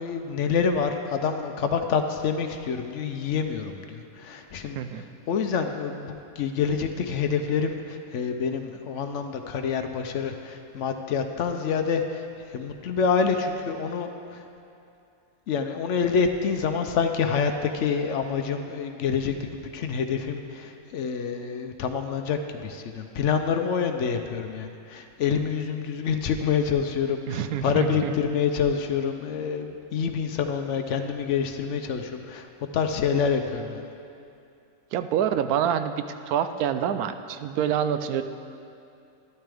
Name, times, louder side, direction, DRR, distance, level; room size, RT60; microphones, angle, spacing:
voice 1, 0.0-14.4 15.5-32.5 32.7-33.9, left 6 dB, 65° left, 6 dB, 0.8 m, -27 dB
voice 2, 27.3-28.1 34.9-36.0 36.3-38.2, right 9 dB, 90° right, 10 dB, 1.1 m, -26 dB
12.5 x 11.0 x 3.4 m, 2.7 s
omnidirectional pair, 1.5 m